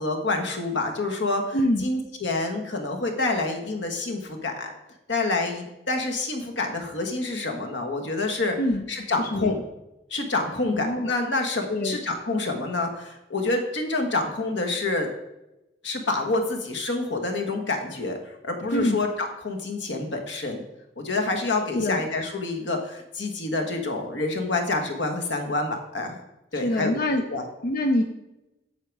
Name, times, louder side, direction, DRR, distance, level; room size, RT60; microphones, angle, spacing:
voice 1, 0.0-4.7 5.1-8.6 8.9-9.6 10.1-15.1 15.8-20.6 21.0-26.2 26.5-27.4, left 2 dB, 85° left, 3 dB, 1.4 m, -27 dB
voice 2, 1.5-1.9 8.6-8.8 9.2-9.6 10.7-11.1 11.7-12.0 18.7-19.0 21.7-22.0 26.6-27.2 27.6-28.0, left 1 dB, 55° left, 6 dB, 0.6 m, -25 dB
8.6 x 6.7 x 4.7 m, 0.95 s
head